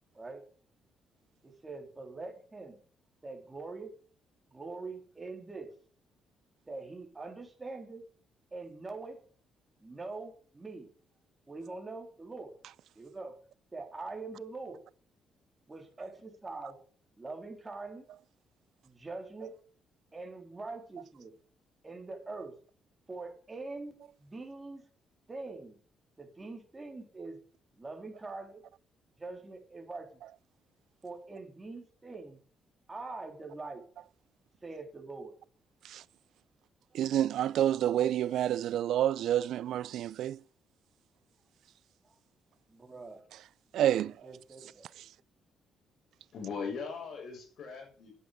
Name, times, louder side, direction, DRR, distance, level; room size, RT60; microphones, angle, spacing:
voice 1, 1.4-2.8 3.2-3.9 4.5-5.7 6.7-8.0 8.5-9.2 9.8-10.9 11.5-12.5 13.0-13.3 13.7-14.8 15.7-16.8 17.2-18.0 18.8-19.6 20.1-21.3 21.8-22.5 23.1-24.8 25.3-25.8 26.2-27.4 27.8-28.6 29.2-30.1 31.0-32.4 32.9-33.8 34.6-35.3 42.7-43.2 44.0-44.9, right 3 dB, 20° right, 3.7 m, -43 dB
voice 2, 36.9-40.4 43.7-44.1, right 11 dB, 75° right, 0.5 m, -28 dB
voice 3, 46.3-48.1, left 5 dB, 65° left, 6.5 m, -39 dB
11.0 x 8.4 x 6.8 m
cardioid pair, 90°, 0 cm